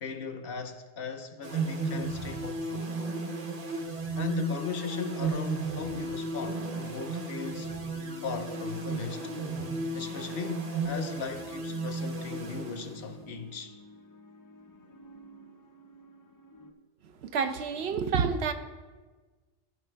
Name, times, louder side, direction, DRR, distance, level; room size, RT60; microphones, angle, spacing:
voice 1, 0.0-2.9 4.2-7.7 8.2-9.3 9.9-13.7, left 6 dB, 65° left, 0.8 m, -37 dB
sound 1, 1.4-13.3, right 3 dB, 40° right, 0.9 m, -34 dB
sound 2, 5.8-16.7, left 1 dB, 30° left, 0.3 m, -51 dB
voice 2, 17.0-18.5, right 6 dB, 75° right, 0.9 m, -29 dB
14.0 x 5.0 x 3.3 m
omnidirectional pair, 1.1 m